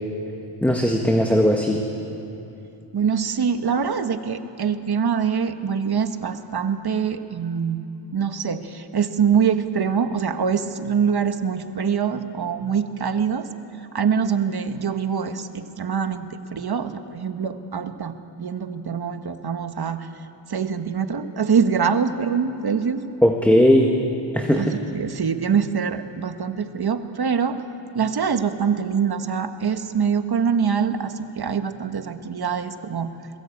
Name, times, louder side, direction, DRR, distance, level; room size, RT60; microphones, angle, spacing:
voice 1, 0.6-1.8 23.2-23.9 24.3-24.8, equal, 5° left, 2 dB, 1.6 m, -18 dB
voice 2, 2.9-7.8 8.1-13.5 13.9-20.1 20.5-23.0 24.6-27.6 27.9-33.1, right 6 dB, 50° right, 8 dB, 1.3 m, -24 dB
22.0 x 21.0 x 8.6 m, 2.9 s
wide cardioid pair, 100°, 47 cm